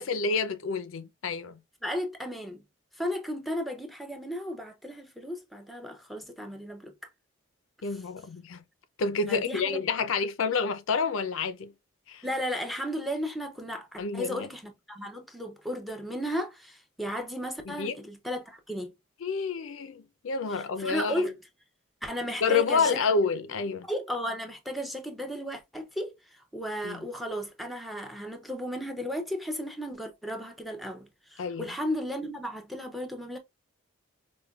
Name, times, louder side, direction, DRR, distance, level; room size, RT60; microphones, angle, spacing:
voice 1, 0.0-1.6 7.8-8.6 9.0-11.7 12.1-12.2 14.0-14.5 17.7-18.0 19.2-21.3 22.4-23.9 26.8-27.0 31.4-31.7, left 5 dB, 75° left, 0.4 m, -29 dB
voice 2, 1.8-2.6 3.0-6.9 9.3-9.8 12.2-18.9 20.5-21.3 22.0-23.0 23.9-33.4, equal, ahead, 0.5 m, -34 dB
4.8 x 2.2 x 2.3 m
head